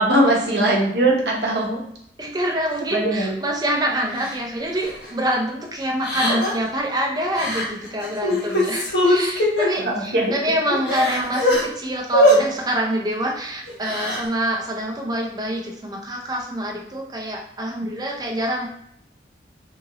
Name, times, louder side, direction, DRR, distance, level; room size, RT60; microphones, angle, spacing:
voice 1, 0.0-1.8 2.9-3.4 9.8-10.3, right 1 dB, 75° right, -2 dB, 0.8 m, -20 dB
voice 2, 2.2-18.7, equal, 20° right, 0 dB, 0.5 m, -26 dB
Crying sobbing, 4.2-4.3 4.8-5.0 6.0-6.7 7.3-7.6 8.0-9.7 10.3-10.4 10.7-11.6 12.1-12.4 13.7-14.2, equal, 75° left, 1.0 m, -20 dB
2.8 x 2.5 x 2.9 m, 0.70 s
head